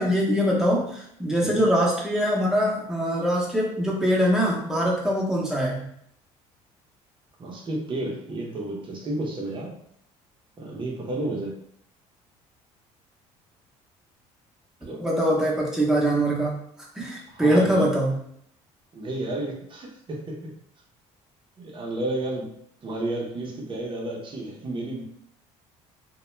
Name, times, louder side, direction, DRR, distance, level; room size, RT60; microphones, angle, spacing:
voice 1, 0.0-5.9 15.0-16.5 17.0-18.1, equal, 5° right, -4 dB, 0.8 m, -23 dB
voice 2, 7.4-9.8 10.6-11.6 14.8-15.0 17.3-17.9 18.9-20.5 21.6-22.5 22.8-25.0, right 2 dB, 35° right, -1 dB, 0.7 m, -31 dB
2.2 x 2.0 x 3.1 m, 0.68 s
supercardioid pair, 80°, 14 cm